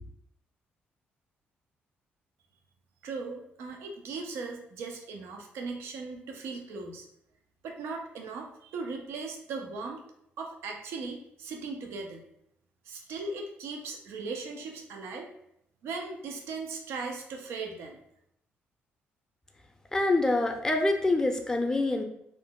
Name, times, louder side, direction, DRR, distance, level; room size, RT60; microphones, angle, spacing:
voice 1, 3.0-7.1 7.6-10.0 10.4-12.2 12.9-15.3 15.8-18.0, right 4 dB, 80° right, 2 dB, 0.5 m, -38 dB
voice 2, 19.9-22.0, left 2 dB, 15° left, 3 dB, 0.5 m, -25 dB
2.6 x 2.0 x 3.6 m, 0.75 s
cardioid pair, 85°, 4 cm